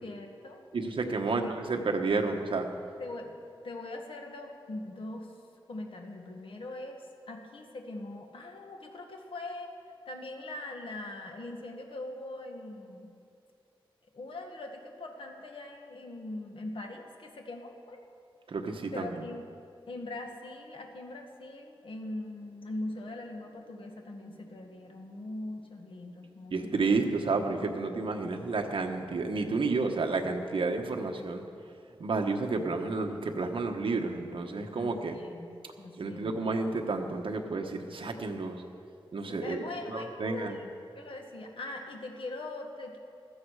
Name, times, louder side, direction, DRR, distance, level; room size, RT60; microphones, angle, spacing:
voice 1, 0.0-0.6 1.3-1.6 3.0-3.3 3.6-5.3 5.7-7.0 7.3-9.7 10.0-13.1 14.1-18.0 18.9-19.5 19.9-27.3 28.3-28.4 34.7-35.5 35.8-36.4 39.3-43.0, left 2 dB, 65° left, 2 dB, 1.7 m, -41 dB
voice 2, 0.7-1.4 1.7-2.7 18.5-19.1 26.5-31.4 32.0-35.2 36.0-38.6 39.1-39.7 39.9-40.6, right 3 dB, 65° right, 3 dB, 1.2 m, -30 dB
15.5 x 13.5 x 4.8 m, 2.5 s
wide cardioid pair, 110°, 9 cm